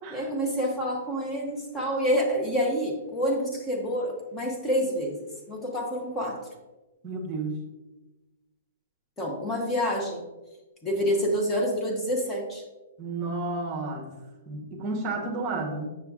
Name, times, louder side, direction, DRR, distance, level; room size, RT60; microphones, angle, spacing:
voice 1, 0.1-5.2 5.5-6.4 9.2-10.2 10.8-12.6, equal, 10° left, 0 dB, 0.8 m, -27 dB
voice 2, 7.0-7.6 13.0-14.1 14.5-15.8, right 3 dB, 20° right, 2 dB, 1.0 m, -31 dB
6.7 x 6.7 x 2.4 m, 1.1 s
hypercardioid pair, 180°, 0 cm